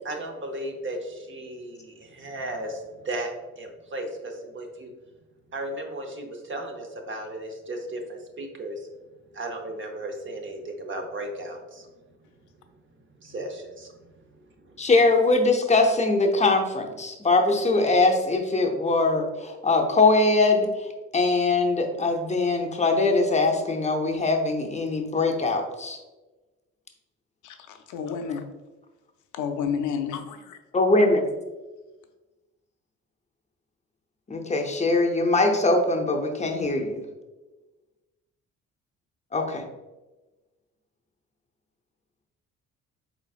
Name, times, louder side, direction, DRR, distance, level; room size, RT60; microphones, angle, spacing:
voice 1, 0.0-3.3 3.6-4.9 5.5-8.9 9.3-11.9 13.2-14.1 14.6-14.7, right 1 dB, 40° right, 3 dB, 0.8 m, -35 dB
voice 2, 14.8-20.9 21.1-26.0 30.7-31.2 34.3-37.0 39.3-39.6, left 3 dB, 25° left, 3 dB, 0.6 m, -22 dB
voice 3, 27.4-28.5 29.3-30.6, left 7 dB, 75° left, 6 dB, 0.5 m, -31 dB
4.4 x 3.9 x 2.4 m, 1.2 s
cardioid pair, 90°, 30 cm